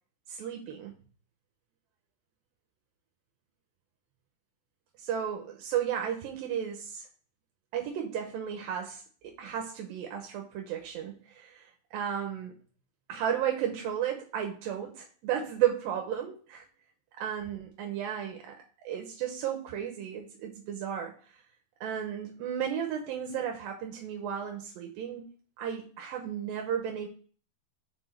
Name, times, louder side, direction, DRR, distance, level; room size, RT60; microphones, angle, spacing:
voice 1, 0.3-0.9 5.0-7.1 7.7-12.5 13.1-16.7 17.2-18.6 18.8-21.3 21.8-25.3 25.6-27.1, right 9 dB, 85° right, 3 dB, 2.6 m, -34 dB
6.0 x 4.4 x 6.3 m, 0.42 s
omnidirectional pair, 4.0 m